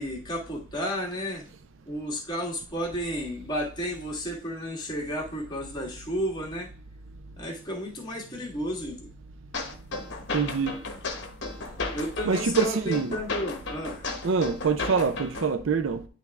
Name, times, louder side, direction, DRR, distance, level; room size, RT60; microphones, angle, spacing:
voice 1, 0.0-1.5 1.9-6.7 7.4-9.1 11.9-14.1, equal, 20° left, 1.6 m, -32 dB
sound 1, 9.5-15.5, left 3 dB, 50° left, 1.1 m, -34 dB
voice 2, 10.3-10.8 12.3-13.2 14.2-16.1, right 5 dB, 60° right, 0.4 m, -25 dB
10.5 x 3.4 x 3.5 m
head